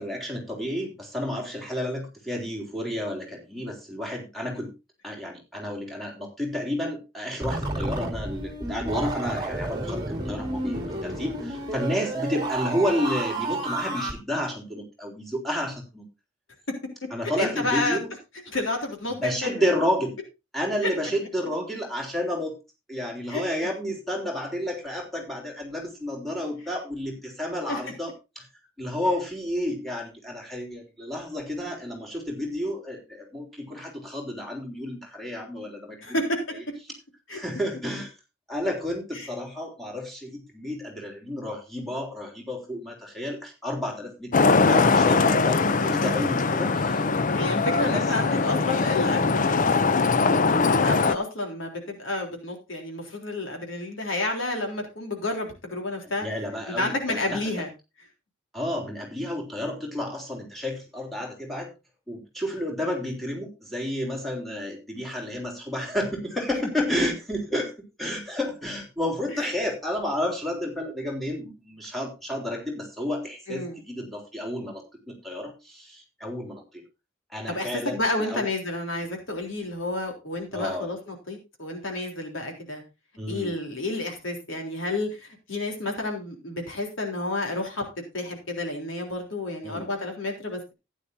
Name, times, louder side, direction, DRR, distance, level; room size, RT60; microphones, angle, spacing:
voice 1, 0.0-4.7 5.0-16.0 17.1-18.1 19.2-20.1 20.5-22.5 22.9-28.5 28.8-36.2 37.3-38.1 38.5-47.0 47.8-48.4 56.0-57.4 58.5-61.7 62.1-67.7 68.0-76.6 77.3-78.4 80.5-80.9 83.2-83.6 89.6-89.9, left 1 dB, ahead, -1 dB, 3.4 m, -31 dB
sound 1, 7.4-14.1, right 2 dB, 20° right, 2.1 m, -31 dB
voice 2, 17.4-18.0 18.5-19.6 20.8-20.9 23.3-23.7 27.7-27.8 36.0-36.6 37.3-37.4 39.2-39.3 47.3-56.3 56.7-57.7 69.3-69.4 73.5-73.8 77.5-82.8 83.3-90.7, left 2 dB, 75° left, 2 dB, 3.6 m, -30 dB
Traffic noise roadway noise, 44.3-51.2, left 4 dB, 40° left, 0.5 m, -21 dB
14.5 x 10.0 x 2.7 m, 0.26 s
head